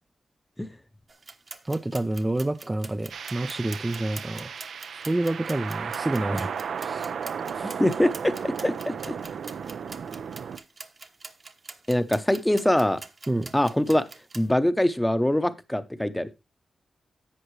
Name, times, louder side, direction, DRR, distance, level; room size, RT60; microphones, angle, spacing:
sound 1, 1.1-14.5, right 3 dB, 45° right, 1.0 m, -44 dB
voice 1, 1.6-4.6 4.9-6.5 6.8-7.1 13.3-13.5, right 2 dB, 20° right, 0.5 m, -28 dB
sound 2, 3.1-10.6, right 7 dB, 85° right, 0.6 m, -34 dB
voice 2, 7.6-9.1 11.9-13.0 13.5-14.0 14.3-16.3, left 1 dB, 10° left, 0.8 m, -23 dB
11.0 x 7.7 x 3.2 m
wide cardioid pair, 95°, 0 cm